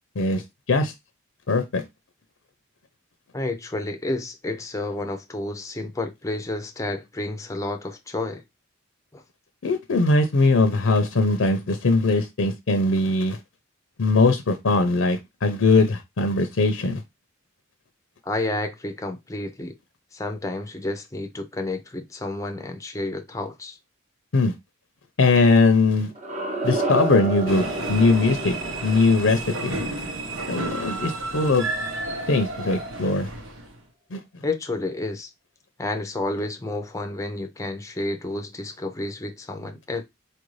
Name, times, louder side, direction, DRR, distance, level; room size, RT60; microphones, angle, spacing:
voice 1, 1.5-1.8 9.6-13.4 14.0-17.0 24.3-24.5 25.2-26.1 26.6-28.6 28.8-29.8 30.5-31.7 32.3-33.3 34.1-34.2, left 3 dB, 70° left, 0.6 m, -20 dB
voice 2, 3.3-8.4 9.1-9.2 18.2-19.7 20.1-23.8 34.4-35.3 35.8-40.0, left 2 dB, 15° left, 0.5 m, -30 dB
sound 1, 26.1-31.0, right 2 dB, 35° right, 0.9 m, -31 dB
sound 2, 27.4-33.8, right 2 dB, 80° right, 1.0 m, -32 dB
4.3 x 2.6 x 3.1 m
head